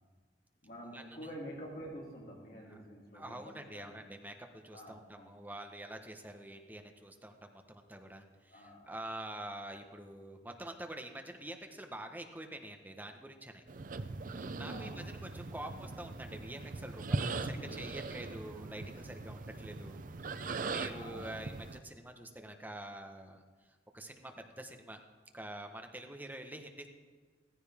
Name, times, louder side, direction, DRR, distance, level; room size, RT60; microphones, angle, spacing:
voice 1, 0.6-4.1 4.7-5.3 8.5-8.9 14.6-15.3 17.3-17.9 20.9-21.4, equal, 60° left, -4 dB, 3.8 m, -48 dB
voice 2, 3.1-13.6 14.3-20.0 20.3-23.4 23.9-25.0 25.3-26.9, right 1 dB, 10° right, 4 dB, 1.1 m, -46 dB
sound 1, 13.7-21.8, right 3 dB, 50° right, 0.6 m, -40 dB
15.5 x 14.5 x 3.6 m, 1.5 s
head